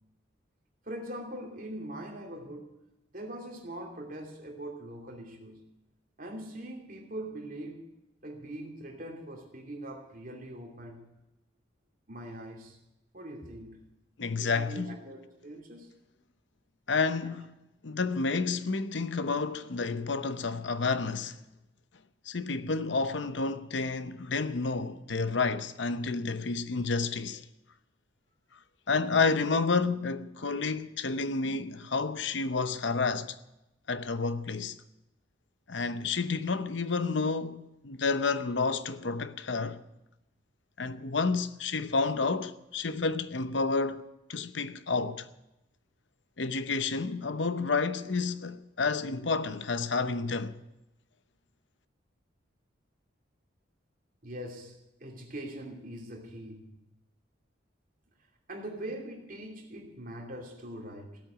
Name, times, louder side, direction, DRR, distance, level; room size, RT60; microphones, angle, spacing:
voice 1, 0.8-2.7 3.1-5.6 6.2-7.8 8.2-11.1 12.1-12.8 13.1-13.8 14.4-15.9 54.2-56.7 58.5-61.2, right 1 dB, 45° right, 2.8 m, -42 dB
voice 2, 14.2-15.0 16.9-17.5 17.8-21.4 22.3-27.4 28.9-33.4 33.9-34.8 35.7-39.8 40.8-44.0 44.3-45.3 46.4-50.6, left 4 dB, 70° left, 0.8 m, -30 dB
16.0 x 8.6 x 9.1 m
head